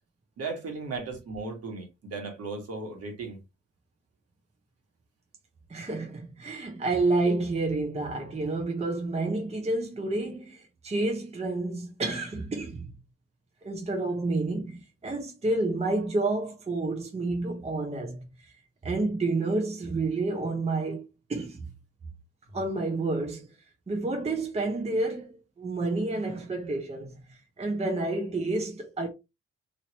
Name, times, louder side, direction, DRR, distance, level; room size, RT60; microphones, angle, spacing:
voice 1, 0.4-3.4, right 3 dB, 55° right, 1.5 m, -36 dB
voice 2, 5.7-12.8 13.6-18.2 18.8-21.0 21.3-21.6 22.5-23.4 23.9-27.1 27.6-29.1, right 2 dB, 20° right, 0.8 m, -29 dB
3.1 x 2.8 x 2.9 m
cardioid pair, 90°, 30 cm